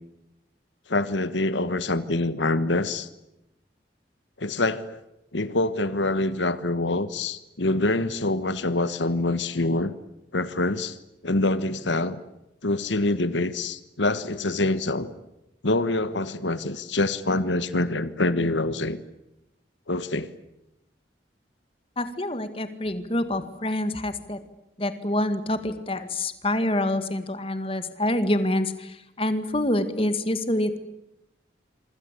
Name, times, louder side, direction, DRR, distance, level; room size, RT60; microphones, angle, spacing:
voice 1, 0.9-3.1 4.4-5.0 5.3-9.9 10.3-11.0 11.2-12.2 12.6-15.1 15.6-19.0 19.9-20.3, left 2 dB, 85° left, 14 dB, 1.4 m, -25 dB
voice 2, 22.0-24.4 24.8-30.8, left 1 dB, 30° left, 11 dB, 2.0 m, -26 dB
26.5 x 25.5 x 8.4 m, 0.89 s
head